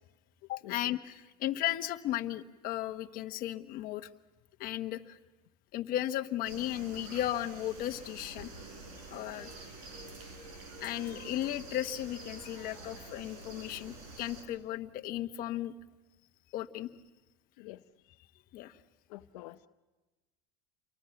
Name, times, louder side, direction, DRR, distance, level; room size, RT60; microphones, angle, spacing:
voice 1, 0.5-4.1 4.6-5.2 5.7-8.5 9.1-9.5 10.8-15.7 16.5-16.9 18.5-18.8, left 13 dB, 50° left, 7 dB, 1.2 m, -35 dB
sound 1, 6.4-14.4, right 2 dB, 70° right, 6.9 m, -47 dB
voice 2, 19.1-19.7, left 18 dB, 80° left, 7 dB, 0.8 m, -47 dB
29.0 x 24.0 x 5.9 m, 1.2 s
supercardioid pair, 130°, 19 cm